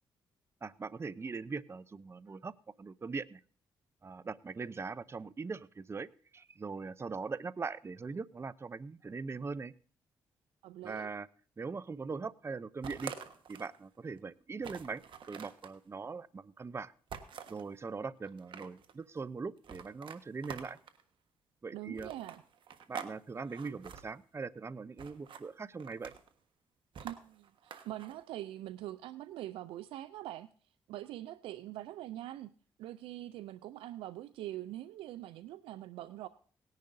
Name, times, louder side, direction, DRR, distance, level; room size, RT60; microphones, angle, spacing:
voice 1, 0.6-3.4 4.0-9.7 10.8-11.3 11.6-13.1 13.5-15.0 15.3-16.9 17.5-20.8 21.6-22.1 22.9-26.1, right 4 dB, 30° right, 18 dB, 0.5 m, -41 dB
voice 2, 10.6-11.1 21.7-22.4 27.0-30.5 30.9-32.5 32.8-36.3, right 14 dB, 90° right, 14 dB, 0.4 m, -43 dB
sound 1, 12.8-13.8 14.2-14.3 14.6-15.7 17.1-17.7 18.3-18.9 19.6-21.0 22.0-23.1 23.4-24.0 25.0-25.4 25.8-26.3 26.9-28.1, right 7 dB, 65° right, 1.3 m, -46 dB
18.5 x 10.5 x 2.6 m, 0.43 s
supercardioid pair, 60°, 9 cm